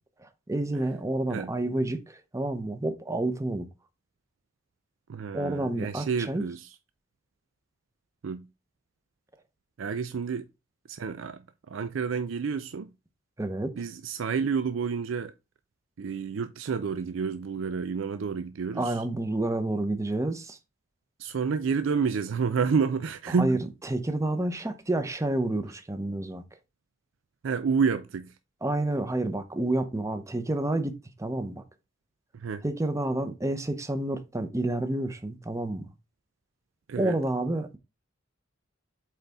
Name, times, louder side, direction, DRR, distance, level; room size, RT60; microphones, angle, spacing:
voice 1, 0.2-3.7 5.3-6.4 13.4-13.7 18.7-20.6 23.3-26.4 28.6-31.6 32.6-35.8 37.0-37.8, right 1 dB, 15° right, 0.8 m, -29 dB
voice 2, 5.1-6.7 8.2-8.5 9.8-10.5 10.9-12.9 13.8-15.3 16.0-19.0 21.2-23.7 27.4-28.4 32.3-32.6 36.9-37.2, right 5 dB, 90° right, 0.4 m, -29 dB
7.9 x 4.1 x 3.5 m
head